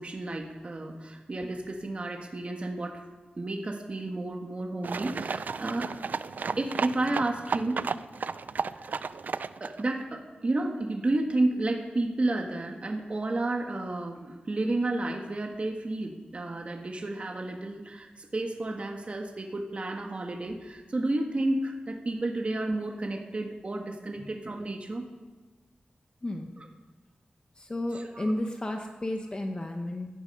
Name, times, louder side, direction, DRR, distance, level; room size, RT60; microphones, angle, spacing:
voice 1, 0.0-3.0 3.4-5.9 6.6-7.8 8.8-9.0 9.6-25.0 26.6-26.7 27.9-28.3, right 2 dB, 40° right, 2 dB, 1.5 m, -31 dB
sound 1, 4.8-9.8, right 5 dB, 65° right, 0.4 m, -33 dB
voice 2, 26.2-26.5 27.6-30.1, left 1 dB, 30° left, 3 dB, 1.1 m, -32 dB
17.0 x 12.0 x 5.5 m, 1.3 s
wide cardioid pair, 100°, 3 cm